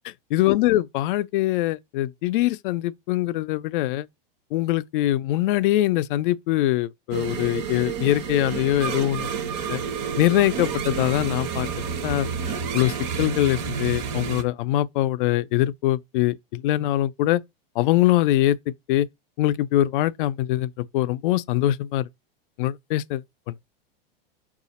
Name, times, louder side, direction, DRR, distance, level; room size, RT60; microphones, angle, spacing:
voice 1, 0.3-4.1 4.5-9.3 9.7-9.8 10.2-11.7 12.0-12.3 12.7-17.4 17.8-18.6 18.9-19.1 19.4-22.1 22.6-23.5, left 14 dB, 60° left, 0.4 m, -23 dB
sound 1, 7.1-14.4, right 6 dB, 40° right, 0.7 m, -29 dB
4.8 x 2.4 x 4.0 m
supercardioid pair, 135°, 30 cm